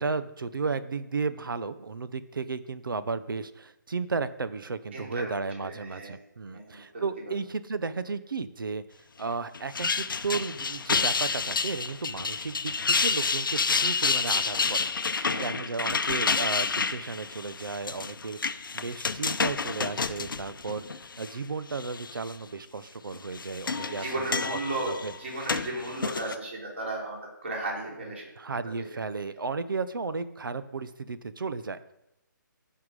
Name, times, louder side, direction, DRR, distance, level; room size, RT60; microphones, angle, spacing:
voice 1, 0.0-8.8 9.2-18.4 18.7-24.6 24.9-25.1 28.4-31.8, right 4 dB, 85° right, 13 dB, 1.0 m, -34 dB
voice 2, 4.9-5.3 5.6-6.1 6.5-7.0 15.1-15.5 23.7-28.3, right 2 dB, 35° right, -2 dB, 3.3 m, -35 dB
sound 1, 9.5-21.3 21.7-22.3 23.1-26.4, left 5 dB, 85° left, 0.7 m, -29 dB
15.0 x 5.9 x 4.9 m, 0.87 s
hypercardioid pair, 180°, 11 cm